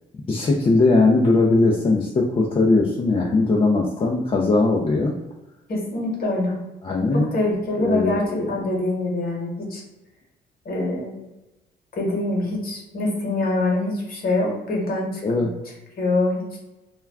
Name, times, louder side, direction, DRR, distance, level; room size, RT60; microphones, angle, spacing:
voice 1, 0.3-5.1 6.8-7.3 7.8-8.6 15.2-15.5, left 3 dB, 25° left, -1 dB, 0.4 m, -19 dB
voice 2, 5.7-6.6 7.1-9.8 10.6-11.2 11.9-15.5 16.0-16.6, left 2 dB, 50° left, -2 dB, 1.1 m, -25 dB
2.3 x 2.2 x 3.3 m, 1.0 s
cardioid pair, 90°, 20 cm